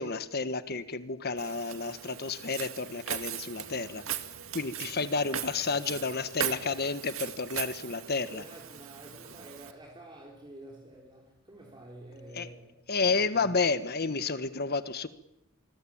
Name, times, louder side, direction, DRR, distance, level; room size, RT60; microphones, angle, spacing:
voice 1, 0.0-4.0 4.5-8.4 12.4-12.5 12.9-15.1, left 4 dB, 50° left, 1.4 m, -31 dB
Walk footsteps, 1.4-9.7, right 9 dB, 80° right, 2.1 m, -39 dB
voice 2, 8.1-12.9 13.4-13.5, right 1 dB, 25° right, 4.0 m, -49 dB
26.5 x 21.0 x 8.7 m
head